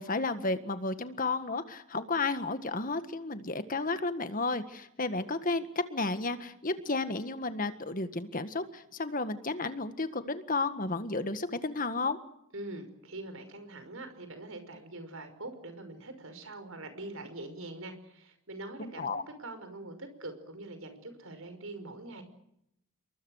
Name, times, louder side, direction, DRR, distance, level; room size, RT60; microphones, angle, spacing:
voice 1, 0.0-12.2 18.8-19.2, left 3 dB, 40° left, 10 dB, 1.7 m, -32 dB
voice 2, 12.5-19.1 19.4-22.2, right 2 dB, 65° right, 9 dB, 5.5 m, -43 dB
28.0 x 23.0 x 6.5 m, 0.78 s
head